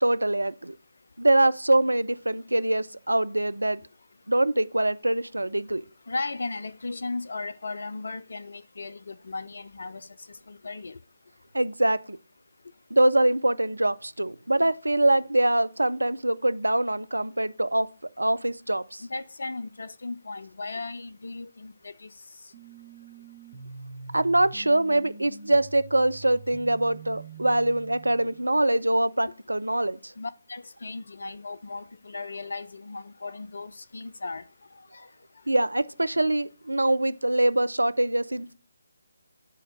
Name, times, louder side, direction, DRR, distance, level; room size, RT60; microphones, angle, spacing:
voice 1, 0.0-0.7 1.2-3.8 4.3-5.8 11.5-12.2 12.9-17.9 18.2-19.0 24.1-30.1 35.5-38.5, right 1 dB, 80° right, 0.4 m, -24 dB
voice 2, 6.1-11.0 19.0-22.1 30.2-34.4 34.9-35.1, left 3 dB, 60° left, 0.4 m, -36 dB
sound 1, 22.5-28.5, right 4 dB, 30° right, 1.0 m, -44 dB
8.4 x 4.4 x 5.0 m
figure-of-eight pair, 150°, 0 cm